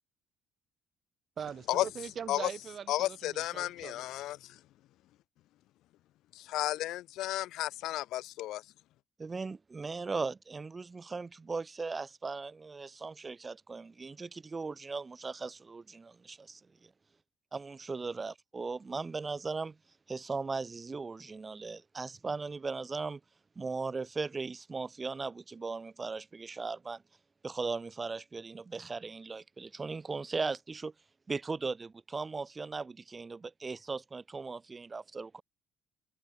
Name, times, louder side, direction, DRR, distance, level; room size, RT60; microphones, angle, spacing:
voice 1, 1.4-3.9, right 7 dB, 40° right, 5.4 m, -42 dB
voice 2, 2.9-4.4 6.3-8.6, left 15 dB, 75° left, 2.3 m, -33 dB
voice 3, 9.2-16.9 17.5-19.8 20.1-23.2 23.6-27.0 27.4-30.9 31.3-35.4, right 4 dB, 20° right, 7.8 m, -38 dB
cardioid pair, 135°, 0 cm